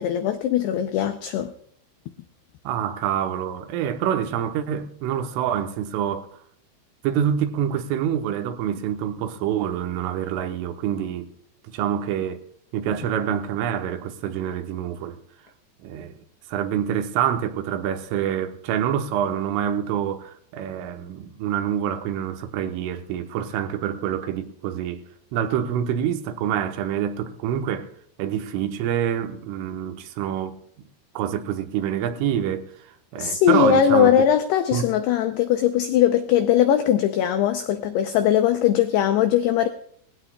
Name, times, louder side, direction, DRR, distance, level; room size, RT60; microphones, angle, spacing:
voice 1, 0.0-1.5 33.2-39.7, left 9 dB, 85° left, 2.3 m, -20 dB
voice 2, 2.7-6.3 7.0-11.3 11.7-12.4 12.7-15.2 15.8-16.2 16.5-25.0 25.3-27.9 28.2-30.6 31.2-32.6 33.1-34.3 34.7-34.8, right 9 dB, 85° right, 3.6 m, -26 dB
20.5 x 16.0 x 2.3 m
omnidirectional pair, 5.6 m